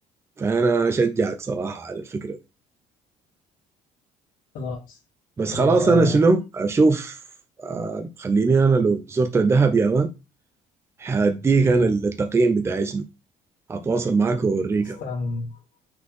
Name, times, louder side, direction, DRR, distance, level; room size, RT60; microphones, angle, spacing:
voice 1, 0.4-2.4 5.4-7.2 7.6-10.1 11.0-13.0 13.7-15.0, right 4 dB, 20° right, 0.6 m, -21 dB
voice 2, 4.5-5.0 5.5-6.3 11.6-11.9 14.8-15.6, left 3 dB, 75° left, 1.9 m, -30 dB
5.8 x 4.0 x 4.7 m
cardioid pair, 130°, 14 cm